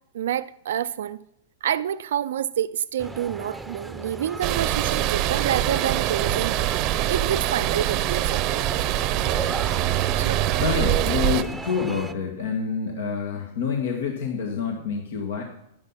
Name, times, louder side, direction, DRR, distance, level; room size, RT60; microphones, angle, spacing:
voice 1, 0.1-1.2 1.6-6.5 7.1-8.4 10.2-10.6, right 10 dB, 75° right, 0.4 m, -28 dB
sound 1, 3.0-12.1, right 1 dB, 5° right, 0.8 m, -37 dB
sound 2, 4.4-11.4, right 14 dB, 45° right, 0.7 m, -24 dB
voice 2, 10.6-15.4, left 6 dB, 70° left, 1.9 m, -27 dB
11.0 x 10.5 x 5.7 m
hypercardioid pair, 115°, 0 cm